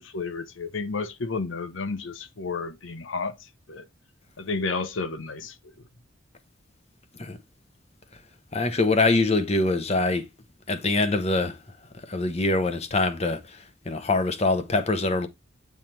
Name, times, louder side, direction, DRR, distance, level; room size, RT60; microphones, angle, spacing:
voice 1, 0.0-3.9 4.4-5.7, left 4 dB, 75° left, 0.9 m, -32 dB
voice 2, 8.5-10.2 10.7-11.6 12.1-15.3, left 2 dB, 35° left, 1.0 m, -24 dB
9.2 x 3.5 x 4.4 m
head